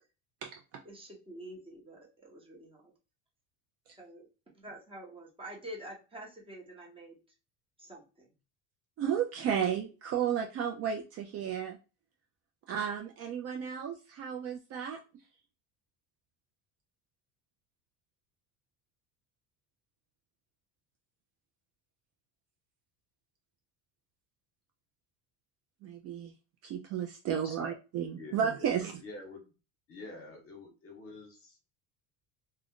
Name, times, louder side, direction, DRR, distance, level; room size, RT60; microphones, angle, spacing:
voice 1, 0.8-2.8 4.0-4.3 4.5-7.2 7.8-8.3, right 1 dB, 15° right, -2 dB, 0.8 m, -47 dB
voice 2, 9.0-11.8 12.7-15.0 25.8-26.3 26.6-28.9, right 8 dB, 40° right, 2 dB, 0.4 m, -33 dB
voice 3, 27.3-27.7 28.2-28.7 29.0-29.4 29.9-31.6, left 2 dB, 35° left, 3 dB, 0.9 m, -47 dB
2.4 x 2.1 x 3.6 m, 0.32 s
cardioid pair, 155°, 38 cm